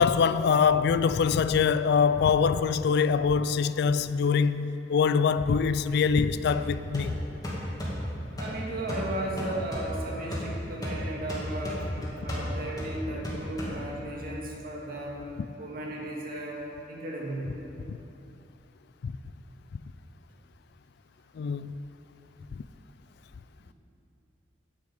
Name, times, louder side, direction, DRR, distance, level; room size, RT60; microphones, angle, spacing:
voice 1, 0.0-7.2 17.9-18.0 19.0-19.1 21.4-21.7, left 6 dB, 60° left, 0.3 m, -24 dB
sound 1, 6.5-14.2, equal, 20° left, 2.4 m, -35 dB
voice 2, 8.4-11.8 12.2-15.2 15.6-17.5, right 1 dB, 55° right, 2.1 m, -35 dB
10.0 x 6.5 x 8.0 m
head